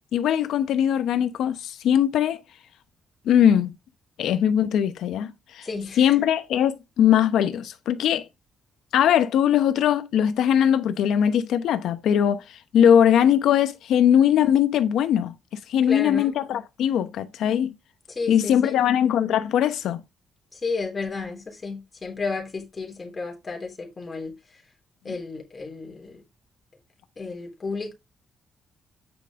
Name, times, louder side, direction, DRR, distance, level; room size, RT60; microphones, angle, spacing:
voice 1, 0.1-2.4 3.2-3.7 4.2-5.7 6.0-8.3 8.9-12.4 12.7-15.3 15.7-17.7 18.3-20.0, left 9 dB, 85° left, 1.0 m, -20 dB
voice 2, 5.6-6.2 15.9-16.3 18.1-18.8 20.5-24.3 25.0-26.2 27.2-27.9, left 4 dB, 30° left, 3.3 m, -32 dB
9.2 x 5.2 x 3.7 m
cardioid pair, 140°, 0 cm